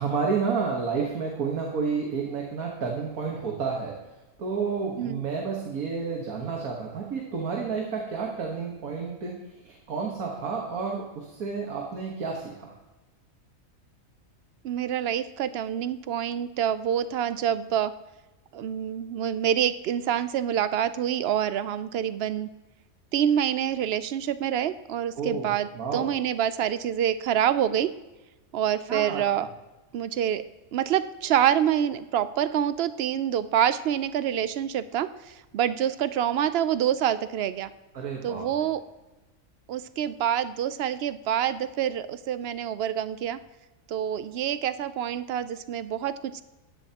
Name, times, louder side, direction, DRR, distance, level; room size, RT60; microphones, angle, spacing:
voice 1, 0.0-4.0 4.4-12.7 25.2-26.1 28.9-29.2 37.9-38.5, right 5 dB, 80° right, -1 dB, 1.8 m, -30 dB
voice 2, 14.6-17.9 18.5-22.5 23.1-27.9 28.5-29.5 29.9-30.4 30.7-37.7 38.2-38.8 39.7-43.4 43.9-46.4, right 10 dB, 65° right, 14 dB, 0.6 m, -26 dB
15.0 x 10.5 x 2.9 m, 1.1 s
omnidirectional pair, 1.5 m